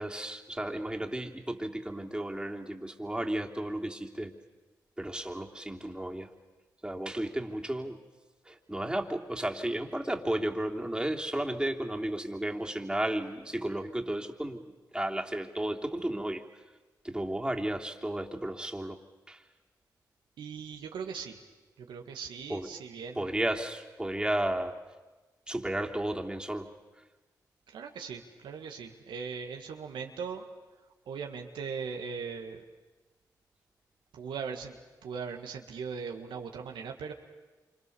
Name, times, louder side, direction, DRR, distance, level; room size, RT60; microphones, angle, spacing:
voice 1, 0.0-4.3 5.0-6.3 6.8-8.0 8.4-16.6 17.0-19.0 19.3-19.4 22.5-22.7 23.1-24.8 25.5-26.7, right 1 dB, 10° right, 1 dB, 3.2 m, -33 dB
voice 2, 20.4-21.4 21.8-23.3 27.7-30.5 31.1-32.6 34.1-34.8 35.0-37.1, right 6 dB, 90° right, 3 dB, 1.7 m, -39 dB
27.5 x 26.0 x 7.0 m, 1.2 s
supercardioid pair, 40°, 8 cm